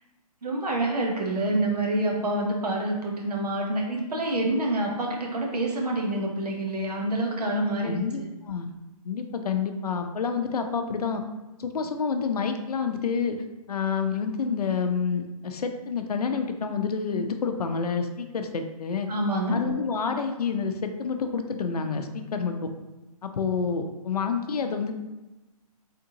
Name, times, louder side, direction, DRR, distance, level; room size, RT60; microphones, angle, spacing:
voice 1, 0.4-8.0 19.1-19.6, right 1 dB, 80° right, 0 dB, 1.1 m, -27 dB
voice 2, 7.8-8.7 9.0-11.2 11.6-13.4 13.7-19.1 19.5-22.7 23.2-24.9, left 5 dB, 75° left, 6 dB, 0.5 m, -28 dB
3.7 x 3.5 x 2.8 m, 1.1 s
hypercardioid pair, 155°, 20 cm